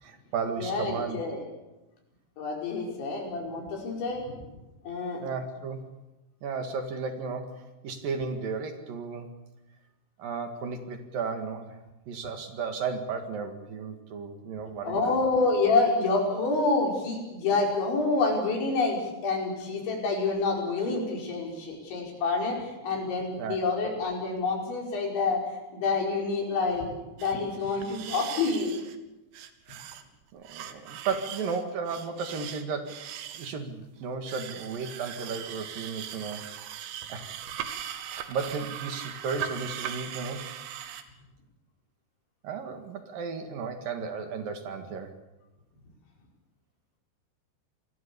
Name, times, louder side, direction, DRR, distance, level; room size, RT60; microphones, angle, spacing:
voice 1, 0.0-1.2 5.2-5.8 6.4-9.3 10.2-15.1 23.4-23.6 30.3-33.0 33.3-36.5 37.1-37.2 38.1-40.5 42.4-45.1, right 5 dB, 55° right, 6 dB, 3.2 m, -34 dB
voice 2, 0.6-1.4 2.4-4.5 4.9-5.2 14.8-25.4 25.7-26.9 27.2-28.8, left 3 dB, 70° left, 0 dB, 7.4 m, -27 dB
sound 1, 27.2-27.3 27.6-29.0 29.3-30.0 30.4-33.5 34.3-41.0, right 10 dB, 85° right, 3.9 m, -39 dB
27.5 x 21.0 x 7.0 m, 1.0 s
omnidirectional pair, 5.4 m